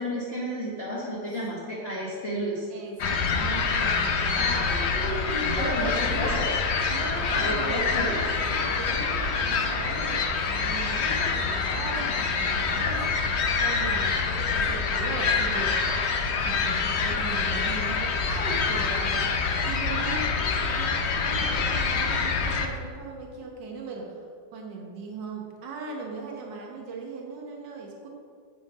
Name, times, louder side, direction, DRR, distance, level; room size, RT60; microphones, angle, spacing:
voice 1, 0.0-2.7 4.3-6.5 7.3-8.2, equal, 40° left, -7 dB, 1.5 m, -32 dB
voice 2, 2.7-4.6 5.3-6.4 6.9-15.8 16.4-20.3 20.6-20.9 21.2-24.2 24.5-28.1, right 3 dB, 90° right, 0 dB, 1.8 m, -38 dB
sound 1, 3.0-22.7, left 5 dB, 55° left, 0.7 m, -26 dB
7.7 x 6.8 x 4.9 m, 2.2 s
omnidirectional pair, 1.9 m